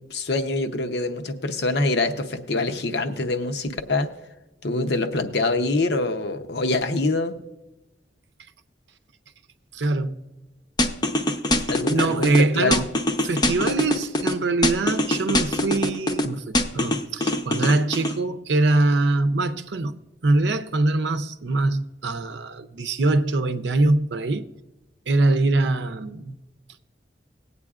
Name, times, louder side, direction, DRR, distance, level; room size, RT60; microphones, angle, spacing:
voice 1, 0.1-4.1 4.6-7.3 11.7-12.9, left 2 dB, 65° left, 0.7 m, -25 dB
voice 2, 9.7-10.2 11.9-12.9 13.2-24.5 25.1-26.3, right 2 dB, 80° right, 0.6 m, -23 dB
sound 1, 10.8-12.4 12.7-14.3 14.6-16.2 16.5-18.1, left 1 dB, 25° left, 0.6 m, -22 dB
19.5 x 8.3 x 2.4 m
head